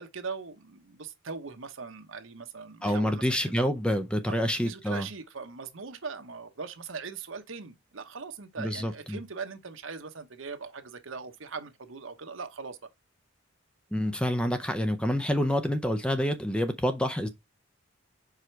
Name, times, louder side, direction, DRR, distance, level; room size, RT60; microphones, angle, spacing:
voice 1, 0.0-3.6 4.3-12.9, right 5 dB, 70° right, 1.0 m, -40 dB
voice 2, 2.8-5.1 8.6-9.2 13.9-17.3, equal, 5° left, 0.5 m, -27 dB
4.9 x 4.7 x 4.5 m
head